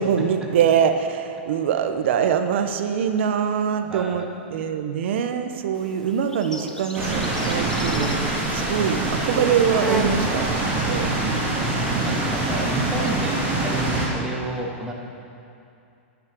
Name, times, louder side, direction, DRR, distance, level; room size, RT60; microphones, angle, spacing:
voice 1, 0.0-4.2 4.5-8.1 8.5-10.5 10.8-11.1 11.9-12.2, right 7 dB, 65° right, 7 dB, 1.0 m, -23 dB
voice 2, 3.8-4.2 6.5-6.8 7.3-7.7 11.6-14.9, right 1 dB, 10° right, -1 dB, 1.5 m, -32 dB
Insect, 5.7-13.4, left 1 dB, 5° left, 0.7 m, -36 dB
sound 1, 6.9-14.1, right 2 dB, 25° right, 3.2 m, -24 dB
11.5 x 6.5 x 8.6 m, 2.6 s
supercardioid pair, 145°, 7 cm